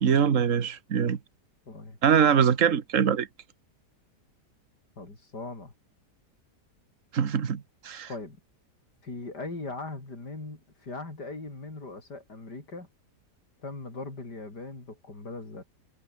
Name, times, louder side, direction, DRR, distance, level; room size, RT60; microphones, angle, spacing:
voice 1, 0.0-1.2 2.0-3.3 7.1-8.1, right 7 dB, 50° right, 1.7 m, -23 dB
voice 2, 1.7-2.0 5.0-5.7 8.1-8.4 9.0-12.9 13.6-15.6, left 3 dB, 75° left, 6.1 m, -39 dB
omnidirectional pair, 1.8 m